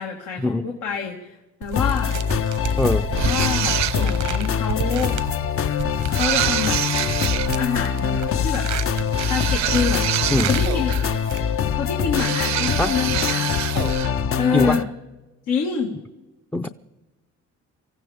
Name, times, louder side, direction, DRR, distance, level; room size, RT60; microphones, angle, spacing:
voice 1, 0.0-2.1 3.2-5.2 6.1-6.8 7.5-8.2 8.4-8.7 9.3-10.1 10.5-11.0 11.7-13.5 14.3-14.8 15.5-15.9, left 6 dB, 85° left, 0 dB, 2.0 m, -26 dB
sound 1, 1.6-11.8, right 9 dB, 90° right, 1.1 m, -33 dB
sound 2, 1.7-14.8, left 7 dB, 45° left, 0.7 m, -24 dB
sound 3, 3.1-4.3 6.1-7.5 9.1-11.2 12.1-14.1, right 13 dB, 65° right, 0.6 m, -26 dB
voice 2, 14.5-14.8 16.5-16.7, left 1 dB, 5° left, 11 dB, 0.5 m, -21 dB
25.0 x 15.5 x 3.5 m, 1.1 s
cardioid pair, 90°, 30 cm